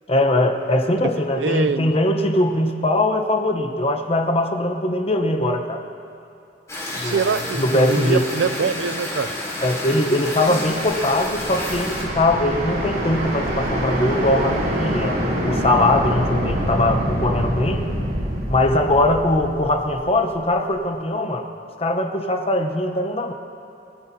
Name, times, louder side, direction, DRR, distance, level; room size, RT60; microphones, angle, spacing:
voice 1, 0.1-5.8 7.0-8.2 9.6-15.2 15.4-17.8 18.5-21.5 21.8-23.3, left 1 dB, 35° left, 5 dB, 0.9 m, -21 dB
voice 2, 1.4-1.9 7.0-9.3, right 5 dB, 80° right, 13 dB, 0.5 m, -24 dB
sound 1, 6.7-12.0, left 1 dB, 20° left, 3.4 m, -30 dB
sound 2, 10.6-20.5, equal, 60° right, 3.2 m, -25 dB
29.0 x 13.5 x 2.8 m, 2.7 s
head